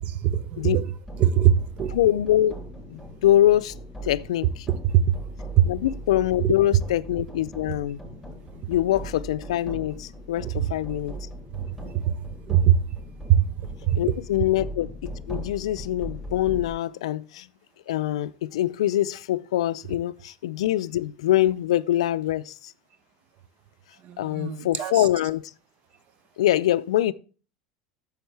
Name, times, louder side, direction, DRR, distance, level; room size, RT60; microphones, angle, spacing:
voice 1, 0.0-0.9 1.2-1.9 4.8-5.2 5.6-5.7 6.4-6.5 10.4-10.7 11.1-11.2 11.5-12.2 12.5-12.8 13.3-13.5 13.8-14.0 24.0-25.0, right 10 dB, 50° right, 0.7 m, -22 dB
sound 1, 1.0-16.7, right 1 dB, 5° right, 3.6 m, -39 dB
voice 2, 1.9-2.6 2.9-3.8 4.0-4.7 5.6-8.0 8.7-11.2 14.0-17.5 17.9-22.7 24.2-25.4 26.4-27.1, left 13 dB, 85° left, 0.4 m, -24 dB
10.0 x 7.1 x 3.3 m
hypercardioid pair, 100°, 3 cm